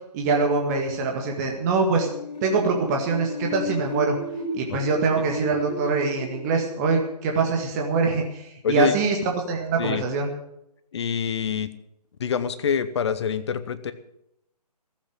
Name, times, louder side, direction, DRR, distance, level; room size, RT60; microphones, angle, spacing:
voice 1, 0.1-2.1 2.4-4.2 4.5-10.3, right 4 dB, 25° right, 1 dB, 2.0 m, -24 dB
sound 1, 2.0-7.7, left 1 dB, 80° left, 3.6 m, -35 dB
voice 2, 8.6-8.9 9.8-10.0 10.9-11.7 12.2-13.9, left 7 dB, 40° left, 13 dB, 1.1 m, -25 dB
15.0 x 8.4 x 9.1 m, 0.82 s
figure-of-eight pair, 145°, 21 cm